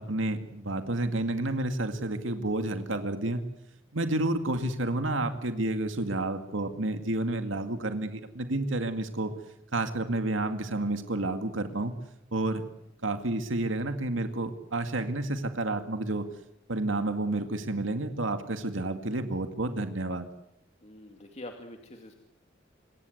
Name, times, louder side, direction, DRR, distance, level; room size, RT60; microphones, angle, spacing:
voice 1, 0.0-3.4 3.9-9.3 9.7-11.9 12.3-12.7 13.0-16.2 16.7-20.3, right 2 dB, 90° right, 7 dB, 2.2 m, -30 dB
voice 2, 20.8-22.2, left 1 dB, 35° left, 4 dB, 2.3 m, -45 dB
26.5 x 22.5 x 8.0 m, 0.81 s
head